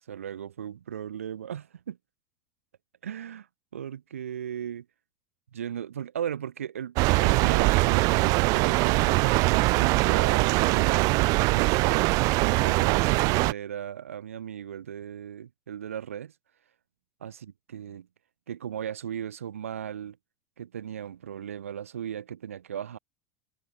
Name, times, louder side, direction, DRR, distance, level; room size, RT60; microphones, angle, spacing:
voice 1, 0.1-2.0 3.0-3.5 3.7-4.9 5.5-7.0 7.2-11.2 11.5-16.3 17.2-17.4 17.7-18.1 18.5-20.2 20.6-23.0, right 9 dB, 80° right, 5.7 m, -37 dB
sound 1, 7.0-13.5, right 25 dB, 55° right, 1.4 m, -22 dB
hypercardioid pair, 80°, 7 cm